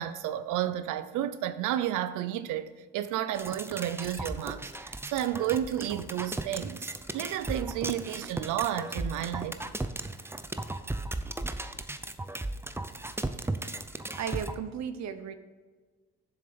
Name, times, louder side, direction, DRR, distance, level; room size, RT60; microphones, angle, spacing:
voice 1, 0.0-2.7 2.9-9.6, right 12 dB, 90° right, 0.5 m, -32 dB
sound 1, 3.3-14.5, right 2 dB, 10° right, 0.5 m, -36 dB
voice 2, 14.1-15.3, right 8 dB, 65° right, 0.9 m, -35 dB
7.3 x 6.7 x 5.1 m
cardioid pair, 90°, 30 cm